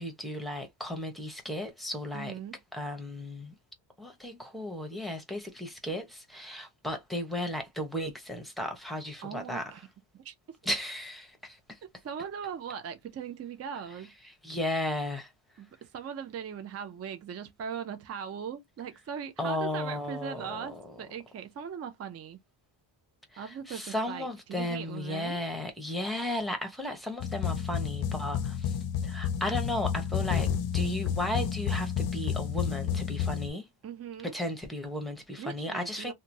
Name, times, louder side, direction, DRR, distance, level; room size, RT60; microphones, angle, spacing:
voice 1, 0.0-2.3 2.7-3.5 4.0-9.7 10.6-11.8 14.4-15.3 19.4-20.9 23.3-28.8 29.0-33.7 34.2-36.1, left 1 dB, ahead, 0.8 m, -35 dB
voice 2, 2.1-2.6 9.2-9.9 10.1-10.6 11.8-14.1 15.6-22.4 23.4-25.4 33.8-34.3 35.4-36.1, right 7 dB, 35° right, 0.4 m, -40 dB
sound 1, 27.2-33.5, left 8 dB, 50° left, 0.5 m, -30 dB
2.9 x 2.2 x 2.6 m
cardioid pair, 135°, 48 cm